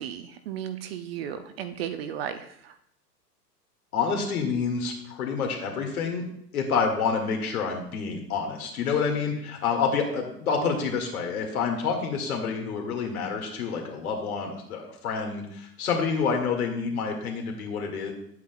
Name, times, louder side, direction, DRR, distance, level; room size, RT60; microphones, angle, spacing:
voice 1, 0.0-2.7, right 9 dB, 40° right, 9 dB, 0.6 m, -35 dB
voice 2, 3.9-6.2 6.5-18.1, left 5 dB, 60° left, 2 dB, 2.1 m, -28 dB
10.5 x 8.2 x 2.3 m, 0.73 s
figure-of-eight pair, 105°, 48 cm